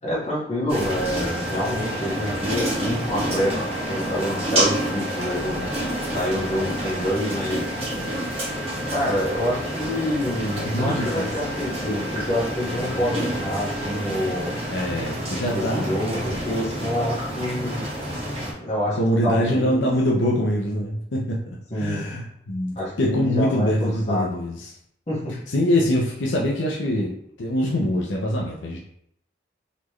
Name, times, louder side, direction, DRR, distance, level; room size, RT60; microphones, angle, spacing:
voice 1, 0.0-7.7 8.9-14.5 15.5-17.9 18.6-19.8 21.7-22.0 22.7-24.2 25.1-25.3, equal, 35° left, -6 dB, 1.5 m, -27 dB
sound 1, 0.7-18.5, right 1 dB, 30° right, 1.5 m, -28 dB
voice 2, 10.6-11.2 14.7-16.0 19.0-24.7 25.5-28.8, equal, 80° left, -3 dB, 0.7 m, -24 dB
4.1 x 3.2 x 3.1 m, 0.73 s
head